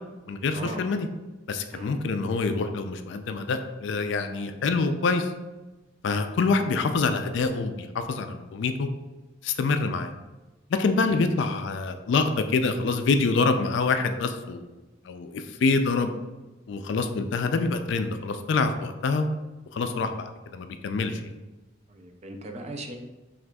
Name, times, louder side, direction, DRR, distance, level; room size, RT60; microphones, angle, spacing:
voice 1, 0.3-1.1 1.5-5.3 6.0-8.9 9.4-10.1 10.8-14.7 15.1-16.1 16.7-19.3 19.7-21.3, left 4 dB, 65° left, 8 dB, 0.3 m, -26 dB
voice 2, 21.9-23.0, right 1 dB, 35° right, 4 dB, 0.4 m, -38 dB
6.0 x 2.4 x 2.2 m, 1.1 s
head